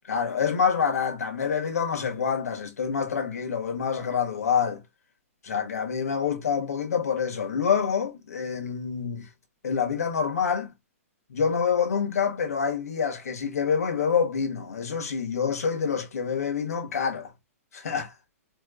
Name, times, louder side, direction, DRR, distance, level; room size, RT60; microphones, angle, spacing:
voice 1, 0.1-4.8 5.4-9.2 9.6-10.7 11.3-17.3 17.7-18.1, left 6 dB, 85° left, 1.4 m, -27 dB
4.3 x 3.0 x 2.4 m
hypercardioid pair, 155°, 8 cm